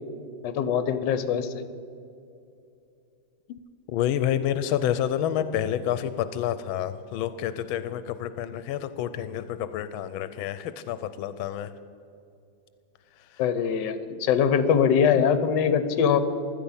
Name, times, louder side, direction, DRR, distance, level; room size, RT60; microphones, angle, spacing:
voice 1, 0.4-1.6 13.4-16.2, left 7 dB, 65° left, 12 dB, 1.4 m, -22 dB
voice 2, 3.9-11.7 13.3-13.4, left 10 dB, 85° left, 13 dB, 1.4 m, -29 dB
16.5 x 12.5 x 5.7 m, 2.6 s
omnidirectional pair, 2.2 m